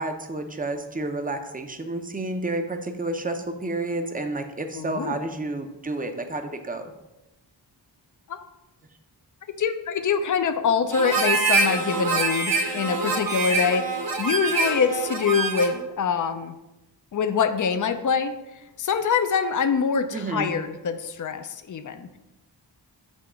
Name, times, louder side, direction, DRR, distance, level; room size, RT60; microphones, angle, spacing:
voice 1, 0.0-6.9 20.1-20.5, right 2 dB, 20° right, 6 dB, 0.6 m, -30 dB
voice 2, 4.7-5.2 8.3-8.4 9.6-16.5 17.1-22.2, left 6 dB, 45° left, 9 dB, 0.5 m, -25 dB
Harmonica, 10.9-15.8, right 3 dB, 50° right, 0.9 m, -25 dB
6.2 x 2.9 x 5.6 m, 0.98 s
wide cardioid pair, 70°, 44 cm